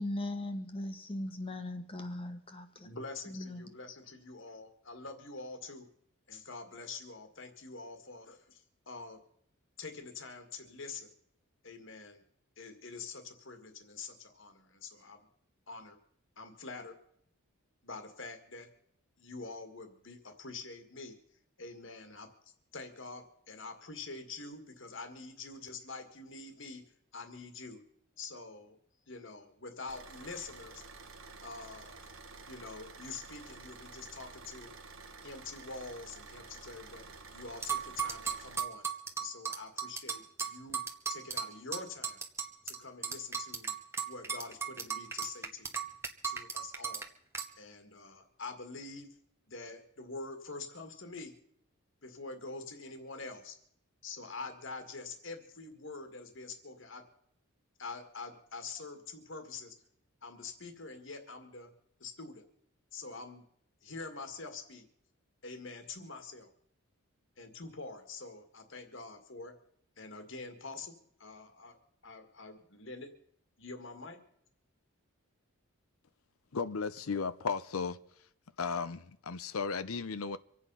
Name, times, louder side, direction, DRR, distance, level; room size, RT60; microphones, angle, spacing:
voice 1, 0.0-2.9 3.3-3.6, left 1 dB, 25° left, 1.3 m, -39 dB
voice 2, 2.8-5.9 6.3-9.2 9.8-11.1 11.6-12.2 12.6-15.2 15.7-16.0 16.4-17.0 17.8-18.7 19.2-21.1 21.6-22.3 22.7-26.8 27.1-27.8 28.2-28.8 29.1-30.8 31.4-32.0 32.5-34.7 35.2-37.0 37.3-38.9 39.2-40.8 41.1-42.2 42.7-43.8 44.0-45.7 46.2-47.1 47.6-49.1 49.5-51.3 52.0-53.6 54.0-57.0 57.8-59.7 60.2-61.7 62.0-62.4 62.9-63.4 63.8-64.9 65.4-66.5 67.4-69.5 70.0-70.9 71.2-71.8 72.0-73.1 73.6-74.2, left 3 dB, 55° left, 1.9 m, -45 dB
Car / Idling, 29.9-38.6, right 4 dB, 65° right, 1.3 m, -51 dB
sound 1, 37.6-42.8 43.0-47.0 47.3-47.5, right 6 dB, 10° right, 1.1 m, -36 dB
voice 3, 76.5-78.0 78.6-80.4, left 5 dB, 75° left, 0.6 m, -35 dB
25.5 x 8.5 x 5.6 m
head